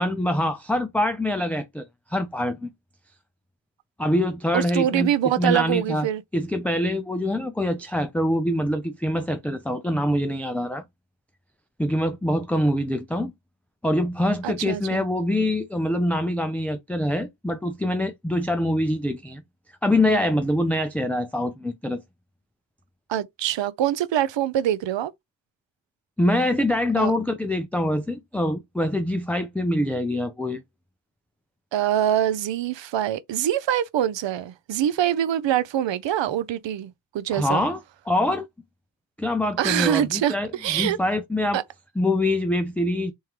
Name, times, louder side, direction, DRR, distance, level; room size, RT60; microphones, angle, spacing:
voice 1, 0.0-2.7 4.0-5.1 5.4-6.1 6.3-10.8 11.8-13.3 13.8-19.4 19.8-22.0 26.2-30.6 37.3-37.8 38.1-38.5 39.2-41.6 42.0-43.1, left 1 dB, 5° left, 0.3 m, -24 dB
voice 2, 4.5-6.2 14.4-15.0 23.1-25.1 27.0-27.1 31.7-37.7 39.6-41.0 41.5-41.6, right 11 dB, 70° right, 0.5 m, -24 dB
3.6 x 3.1 x 2.9 m
wide cardioid pair, 85°, 47 cm